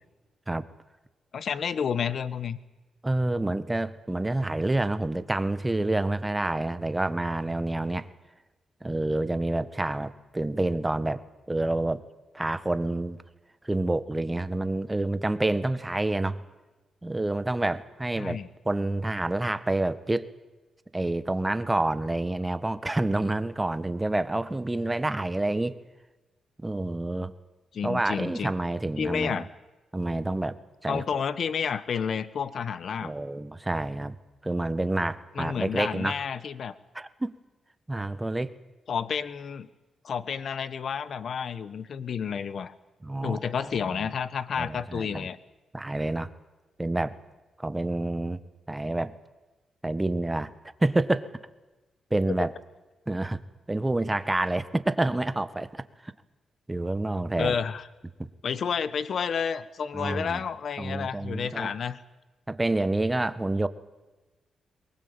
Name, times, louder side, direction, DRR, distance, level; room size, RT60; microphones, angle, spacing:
voice 1, 1.3-2.6 18.2-18.5 27.7-28.5 29.0-29.5 30.9-33.1 35.3-36.7 38.9-39.7 40.0-42.7 43.2-45.4 57.4-57.9 58.4-62.0, left 7 dB, 65° left, 16 dB, 1.2 m, -30 dB
voice 2, 3.0-8.1 8.8-11.2 11.5-12.0 12.3-13.2 13.6-16.4 17.0-18.4 18.6-20.3 20.9-25.8 26.6-27.3 27.8-29.4 29.9-30.5 30.8-31.2 33.0-34.1 34.4-36.2 36.9-37.3 37.9-38.5 43.0-44.0 44.5-45.3 45.7-46.3 46.8-47.1 47.6-48.4 48.7-49.1 49.8-50.5 50.8-51.3 52.1-52.5 53.1-53.4 53.7-56.1 56.7-57.6 58.2-58.3 59.9-60.4 60.8-61.7 62.5-63.7, right 2 dB, 15° right, 13 dB, 1.5 m, -28 dB
23.0 x 20.5 x 8.9 m, 1.1 s
cardioid pair, 80°, 0 cm